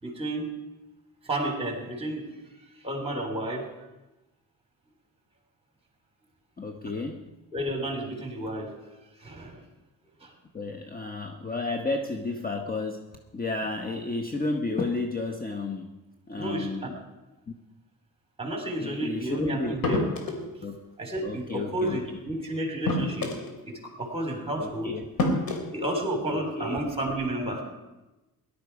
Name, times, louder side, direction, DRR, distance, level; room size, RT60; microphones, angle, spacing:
voice 1, 0.0-0.5 1.2-2.2 2.8-3.7 7.5-8.7 9.2-9.6 10.2-10.3 16.3-16.9 18.4-20.1 21.0-23.3 23.7-24.9 25.7-27.6, right 1 dB, 15° right, 2 dB, 3.7 m, -31 dB
voice 2, 6.6-7.3 10.5-15.9 16.3-17.0 18.8-19.8 20.6-20.8 21.2-22.0 24.6-25.1 26.3-26.8, left 3 dB, 25° left, 3 dB, 1.0 m, -32 dB
sound 1, 19.8-20.5 21.9-22.1 22.8-23.5 24.6-24.7 25.2-25.6, left 2 dB, 65° left, 3.3 m, -27 dB
18.0 x 12.0 x 4.9 m, 1.1 s
cardioid pair, 120°, 38 cm